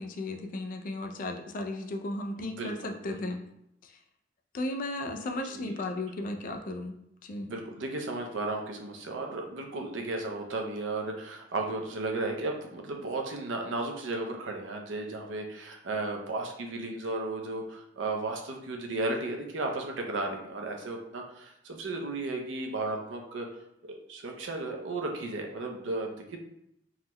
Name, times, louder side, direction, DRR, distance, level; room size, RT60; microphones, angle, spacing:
voice 1, 0.0-3.4 3.8-3.9 4.5-7.0 7.2-7.5, left 2 dB, 45° left, 4 dB, 0.3 m, -35 dB
voice 2, 2.4-3.3 5.5-5.7 7.4-23.5 23.9-26.4, right 2 dB, 80° right, 2 dB, 0.5 m, -34 dB
3.6 x 2.1 x 2.9 m, 0.77 s
head